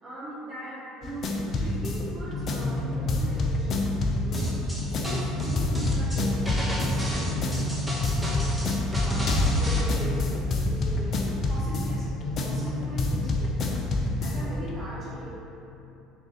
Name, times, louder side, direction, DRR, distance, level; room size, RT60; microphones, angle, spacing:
voice 1, 0.0-3.8 4.2-4.5 4.9-7.8 8.1-8.6 9.0-15.3, right 1 dB, 40° right, -9 dB, 0.9 m, -40 dB
sound 1, 1.0-14.7, left 2 dB, 45° left, 0.5 m, -27 dB
sound 2, 4.3-9.8, right 1 dB, 5° right, 1.0 m, -31 dB
3.6 x 3.0 x 3.9 m, 2.9 s
hypercardioid pair, 65°, 0 cm